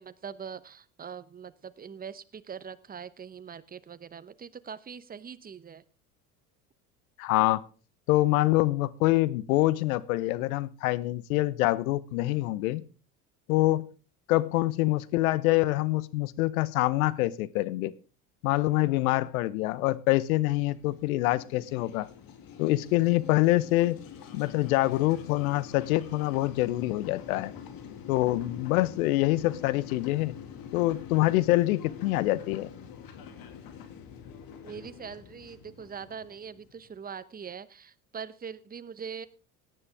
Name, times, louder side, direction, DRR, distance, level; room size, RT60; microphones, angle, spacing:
voice 1, 0.0-5.8 34.6-39.3, right 7 dB, 20° right, 15 dB, 0.9 m, -42 dB
voice 2, 7.2-7.6 8.1-12.8 13.5-13.8 14.3-17.9 18.4-22.1 22.6-24.0 24.3-27.5 28.1-30.3 30.7-32.7, left 18 dB, 70° left, 18 dB, 0.9 m, -25 dB
sound 1, 20.3-37.0, left 7 dB, 50° left, 2.2 m, -46 dB
17.5 x 9.8 x 3.5 m, 0.35 s
hypercardioid pair, 75°, 44 cm